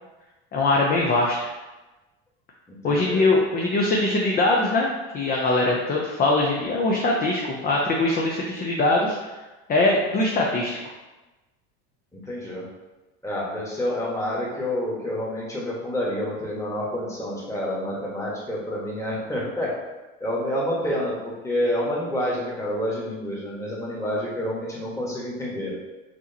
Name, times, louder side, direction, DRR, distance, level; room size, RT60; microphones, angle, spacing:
voice 1, 0.5-1.5 2.8-4.9 5.1-9.2 9.7-10.8, left 2 dB, 30° left, -2 dB, 0.6 m, -22 dB
voice 2, 2.7-3.2 12.1-12.6 13.2-19.7 20.2-25.7, equal, 10° left, -5 dB, 1.4 m, -28 dB
6.2 x 3.0 x 2.8 m, 1.1 s
supercardioid pair, 125°, 33 cm